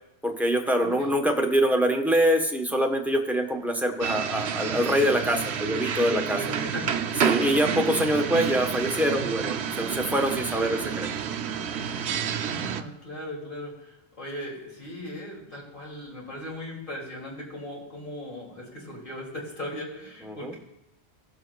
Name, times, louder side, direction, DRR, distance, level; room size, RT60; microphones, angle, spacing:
voice 1, 0.2-6.4 7.2-11.1 20.2-20.5, equal, ahead, 2 dB, 0.9 m, -24 dB
voice 2, 0.8-1.1 5.9-7.0 12.3-20.6, left 1 dB, 50° left, -2 dB, 2.7 m, -38 dB
sound 1, 4.0-12.8, right 8 dB, 80° right, 0.9 m, -29 dB
18.5 x 7.6 x 2.3 m, 0.86 s
omnidirectional pair, 1.1 m